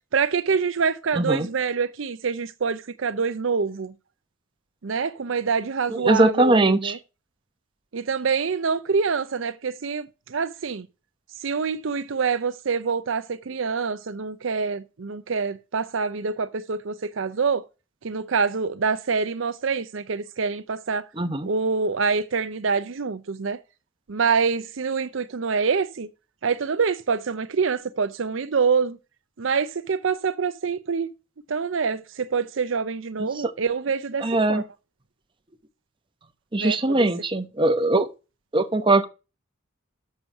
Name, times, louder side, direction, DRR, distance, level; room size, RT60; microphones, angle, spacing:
voice 1, 0.1-3.9 4.8-7.0 7.9-10.9 11.4-17.6 18.0-21.1 21.4-23.6 24.1-26.1 26.4-29.0 29.4-31.1 31.5-34.6 36.6-37.1, right 5 dB, 70° right, 0.6 m, -26 dB
voice 2, 1.2-1.5 6.0-7.0 21.2-21.5 33.2-33.5 34.2-34.6 36.5-38.1 38.5-39.1, right 2 dB, 25° right, 0.9 m, -21 dB
7.1 x 6.7 x 5.6 m
head